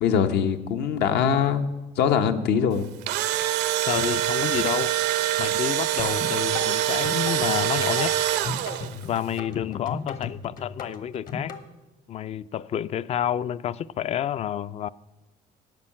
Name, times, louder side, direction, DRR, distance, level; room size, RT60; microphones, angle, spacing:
voice 1, 0.0-1.6 2.0-2.9, left 7 dB, 75° left, 0.9 m, -22 dB
Engine / Drill, 2.8-9.1, right 13 dB, 85° right, 0.6 m, -25 dB
voice 2, 3.9-4.9 5.4-8.1 9.1-11.5 12.1-14.9, left 10 dB, 40° left, 0.3 m, -29 dB
sound 1, 6.0-11.6, left 5 dB, 55° left, 1.2 m, -35 dB
12.0 x 5.6 x 8.7 m
cardioid pair, 110°, 17 cm